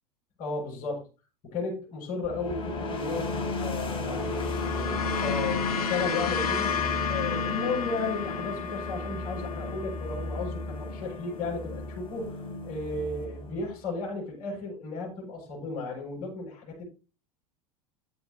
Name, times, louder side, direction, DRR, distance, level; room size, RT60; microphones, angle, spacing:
voice 1, 0.4-1.1 1.4-4.3 4.7-6.8 7.0-16.8, left 3 dB, 45° left, -2 dB, 6.7 m, -34 dB
sound 1, 2.2-13.8, left 2 dB, 25° left, 3.6 m, -34 dB
sound 2, 3.9-12.4, left 7 dB, 75° left, 1.3 m, -33 dB
10.0 x 8.8 x 3.9 m, 0.31 s
figure-of-eight pair, 80°, 19 cm